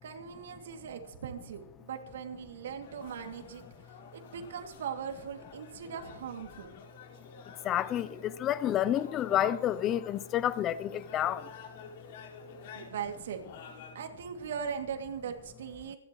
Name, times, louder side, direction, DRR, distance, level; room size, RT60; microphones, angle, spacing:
voice 1, 0.0-3.6 4.1-6.7 12.7-13.4 13.9-16.0, right 7 dB, 70° right, 2.4 m, -39 dB
sound 1, 2.8-13.9, left 5 dB, 55° left, 4.6 m, -50 dB
voice 2, 7.6-11.5, left 11 dB, 25° left, 0.5 m, -29 dB
27.5 x 11.5 x 3.1 m
hypercardioid pair, 145°, 0 cm